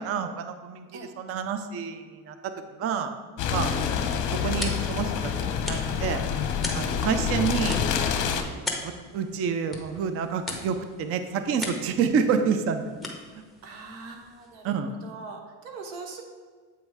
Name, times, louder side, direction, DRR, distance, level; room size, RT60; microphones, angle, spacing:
voice 1, 0.0-0.9 1.2-3.1 3.5-3.7 4.3-6.2 6.7-7.8 8.3-12.8 14.6-14.9, right 6 dB, 35° right, 8 dB, 0.4 m, -28 dB
sound 1, 3.4-8.4, left 7 dB, 45° left, 0.8 m, -27 dB
sound 2, 3.5-14.8, left 2 dB, ahead, 1.0 m, -40 dB
voice 2, 13.6-16.2, right 4 dB, 90° right, 3 dB, 1.2 m, -42 dB
8.1 x 3.2 x 4.7 m, 1.5 s
supercardioid pair, 105°, 43 cm